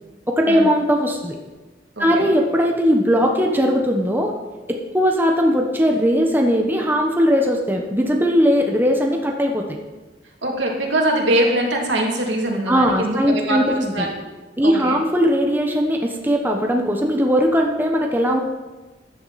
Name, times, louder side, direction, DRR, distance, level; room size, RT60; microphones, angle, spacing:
voice 1, 0.3-1.4 2.0-4.3 4.7-9.7 12.7-14.0 14.6-18.4, equal, 10° right, 1 dB, 1.1 m, -19 dB
voice 2, 2.0-2.3 10.4-14.1 14.6-15.0, right 1 dB, 90° right, -1 dB, 2.8 m, -22 dB
14.0 x 10.5 x 4.2 m, 1.2 s
head